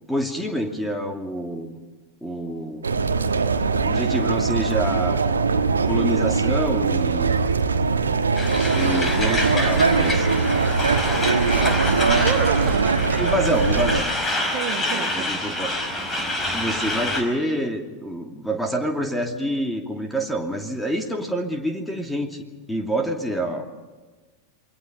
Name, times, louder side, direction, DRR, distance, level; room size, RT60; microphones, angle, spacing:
voice 1, 0.1-1.8 2.2-2.9 3.8-5.2 5.8-7.4 8.7-10.3 13.1-14.1 14.9-15.7 16.5-22.4 22.7-23.7, right 1 dB, ahead, 3 dB, 2.8 m, -27 dB
sound 1, 2.8-14.0, right 4 dB, 75° right, 1.4 m, -21 dB
Truck, 8.3-17.2, left 1 dB, 20° left, 5.0 m, -27 dB
voice 2, 11.3-13.3 14.5-15.6 16.9-17.0, right 8 dB, 40° right, 5 dB, 1.9 m, -32 dB
28.0 x 22.5 x 5.3 m, 1.3 s
figure-of-eight pair, 90°, 0 cm